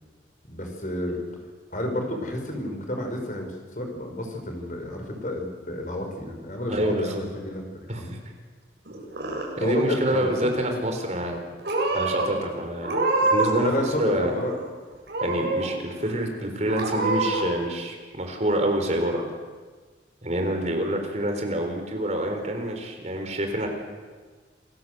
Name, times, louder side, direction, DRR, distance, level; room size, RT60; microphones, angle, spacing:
voice 1, 0.5-1.2 1.7-8.1 9.6-10.5 13.5-14.5, left 1 dB, 45° left, 4 dB, 5.3 m, -30 dB
voice 2, 6.7-7.2 7.9-8.2 9.6-11.4 11.9-12.9 13.3-13.7 14.0-14.3 15.2-19.2 20.2-23.7, right 1 dB, 40° right, 4 dB, 4.3 m, -27 dB
Purr / Meow, 8.9-9.7 10.0-10.6 11.2-11.4 11.6-12.3 12.8-13.6 13.9-14.7 15.1-15.7 16.1-16.2 16.7-17.4, right 2 dB, 75° right, 7.6 m, -26 dB
28.0 x 18.0 x 8.0 m, 1.4 s
head